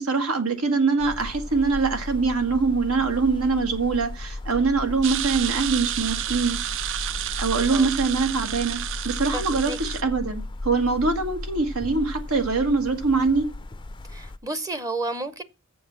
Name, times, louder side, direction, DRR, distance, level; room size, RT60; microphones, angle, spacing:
voice 1, 0.0-6.7 7.4-13.5, right 4 dB, 85° right, 1.7 m, -23 dB
sound 1, 1.0-14.4, left 2 dB, 20° left, 0.4 m, -35 dB
sound 2, 5.0-10.0, right 12 dB, 60° right, 0.4 m, -31 dB
voice 2, 9.3-9.8 14.1-15.4, right 2 dB, 15° right, 0.7 m, -31 dB
7.1 x 6.2 x 7.4 m
head